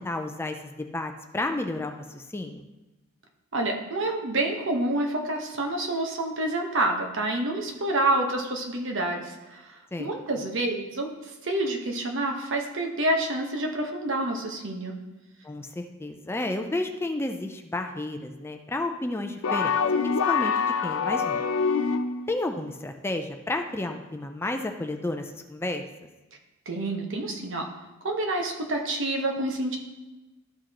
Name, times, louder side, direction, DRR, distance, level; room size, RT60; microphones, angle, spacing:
voice 1, 0.0-2.6 9.9-10.1 15.4-19.7 20.0-21.4 22.3-25.8, left 2 dB, 10° left, 5 dB, 0.4 m, -32 dB
voice 2, 3.5-9.6 10.0-11.1 11.4-15.0 26.7-27.7 28.0-29.8, right 1 dB, 65° right, 2 dB, 1.2 m, -28 dB
sound 1, 19.4-22.3, left 5 dB, 70° left, 0.4 m, -25 dB
13.0 x 4.9 x 2.9 m, 1.1 s
head